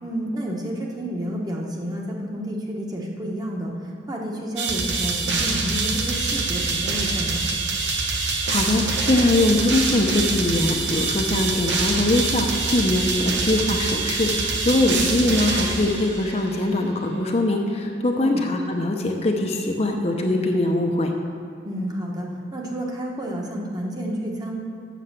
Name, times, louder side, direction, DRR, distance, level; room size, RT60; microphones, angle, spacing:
voice 1, 0.0-7.4 14.8-15.1 18.2-18.4 21.6-24.6, equal, 20° right, -1 dB, 1.1 m, -30 dB
sound 1, 4.6-16.5, right 3 dB, 80° right, 1.0 m, -25 dB
voice 2, 8.5-21.1, left 1 dB, 35° left, 2 dB, 0.7 m, -22 dB
7.6 x 7.0 x 6.7 m, 2.4 s
head